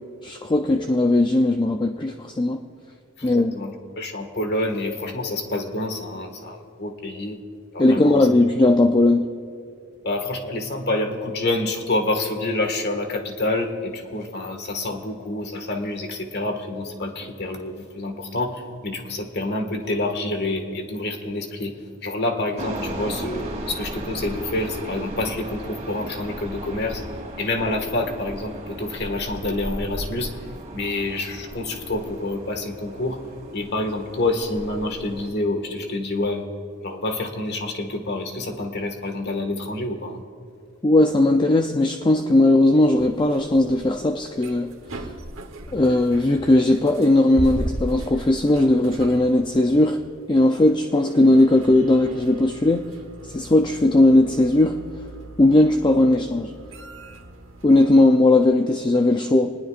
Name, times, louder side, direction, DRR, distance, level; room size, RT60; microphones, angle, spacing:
voice 1, 0.2-2.6 3.2-3.5 7.8-9.3 40.8-44.7 45.7-52.9 53.3-54.8 55.4-56.5 57.6-59.5, left 2 dB, 25° left, 4 dB, 0.5 m, -18 dB
voice 2, 3.2-7.4 7.7-8.3 10.0-21.8 22.0-27.0 27.4-30.3 30.7-33.2 33.5-36.5 36.8-40.2, left 2 dB, 55° left, 4 dB, 1.9 m, -27 dB
sound 1, 22.6-35.3, right 1 dB, 35° right, 2.5 m, -36 dB
sound 2, 43.0-58.5, right 1 dB, 70° right, 1.3 m, -38 dB
26.5 x 20.0 x 2.5 m, 2.2 s
head